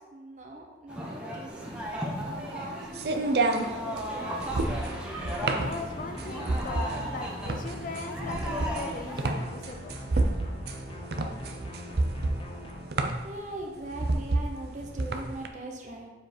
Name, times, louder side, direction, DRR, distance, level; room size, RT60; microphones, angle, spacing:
voice 1, 0.0-1.6 1.9-4.3 13.2-16.1, right 1 dB, 40° right, 1 dB, 1.0 m, -41 dB
sound 1, 0.9-9.3, equal, 5° right, 0.9 m, -36 dB
sound 2, 1.6-15.5, right 2 dB, 55° right, 0.6 m, -30 dB
sound 3, 4.2-12.9, left 1 dB, 30° left, 0.8 m, -42 dB
voice 2, 5.6-10.0, left 3 dB, 45° left, 6 dB, 0.4 m, -39 dB
7.4 x 4.6 x 4.5 m, 1.2 s
head